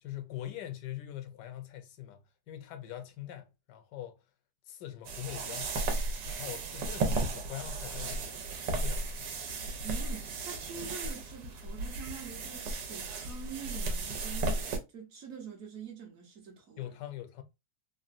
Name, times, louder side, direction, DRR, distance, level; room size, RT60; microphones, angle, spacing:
voice 1, 0.0-4.2 4.7-5.9 6.3-8.4 8.8-9.3 16.8-17.4, left 12 dB, 80° left, 1.2 m, -43 dB
sound 1, 5.0-14.8, right 3 dB, 80° right, 1.3 m, -35 dB
voice 2, 9.8-16.9, right 6 dB, 60° right, 1.1 m, -45 dB
3.7 x 2.1 x 2.4 m
omnidirectional pair, 1.8 m